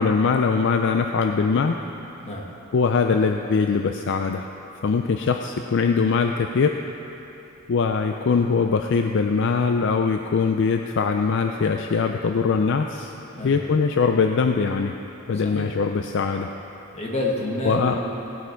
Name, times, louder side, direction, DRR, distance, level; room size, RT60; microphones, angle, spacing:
voice 1, 0.0-1.8 2.7-4.5 4.8-6.8 7.7-13.1 13.4-14.9 15.3-16.5 17.7-18.0, left 5 dB, 55° left, 5 dB, 0.4 m, -22 dB
voice 2, 16.9-18.0, left 1 dB, 30° left, -2 dB, 1.5 m, -28 dB
17.5 x 8.1 x 4.5 m, 2.9 s
head